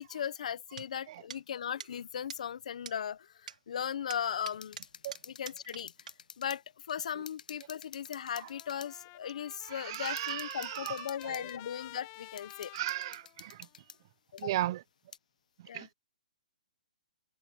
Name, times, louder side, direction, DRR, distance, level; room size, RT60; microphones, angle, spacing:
voice 1, 0.0-4.8 5.2-5.9 6.4-12.7 14.3-14.5 15.7-15.9, left 8 dB, 60° left, 0.9 m, -38 dB
sound 1, 0.8-0.9 1.3-1.4 1.8-1.9 2.3-2.4 2.9-3.0 3.5-3.6 4.1-5.8 6.1-6.2, right 7 dB, 75° right, 3.5 m, -44 dB
sound 2, 4.5-6.6 6.9-7.0 7.3-8.9 9.5-9.6 9.9-11.6 12.4-14.0 14.4-14.5 15.1-15.2, left 6 dB, 85° left, 1.3 m, -50 dB
Trumpet, 8.1-13.7, left 23 dB, 25° left, 1.2 m, -51 dB
voice 2, 9.7-11.4 12.7-13.7 14.4-14.8 15.7-15.9, right 15 dB, 35° right, 0.6 m, -36 dB
hypercardioid pair, 165°, 4 cm